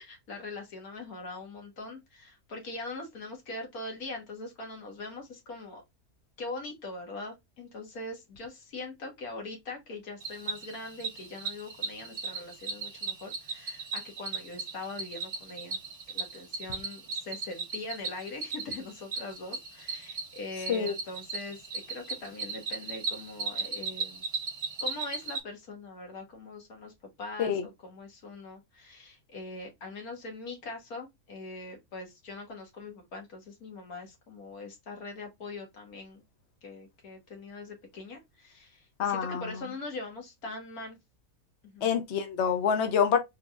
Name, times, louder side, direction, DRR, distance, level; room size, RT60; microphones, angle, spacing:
voice 1, 0.0-5.8 6.4-15.8 16.1-24.3 24.8-26.9 27.2-36.2 36.6-41.0 41.6-41.9, left 2 dB, 75° left, 1.8 m, -42 dB
Cricket, 10.2-25.4, right 4 dB, 45° right, 1.3 m, -37 dB
voice 2, 39.0-39.4 41.8-43.2, left 7 dB, 55° left, 0.9 m, -26 dB
3.8 x 3.3 x 2.4 m
omnidirectional pair, 1.6 m